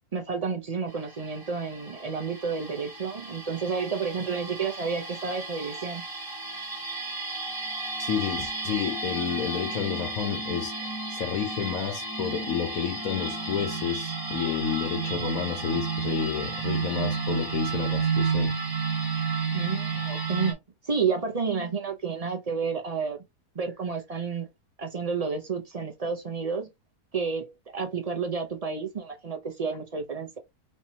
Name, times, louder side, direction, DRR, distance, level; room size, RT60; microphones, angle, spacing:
voice 1, 0.1-6.0 19.5-20.6 20.8-23.2 23.5-24.5 24.8-26.7 27.1-30.4, right 5 dB, 45° right, 0.4 m, -30 dB
sound 1, 0.9-20.5, right 4 dB, 15° right, 1.1 m, -32 dB
voice 2, 8.0-18.5, left 8 dB, 70° left, 1.2 m, -30 dB
4.3 x 3.1 x 2.8 m
omnidirectional pair, 1.6 m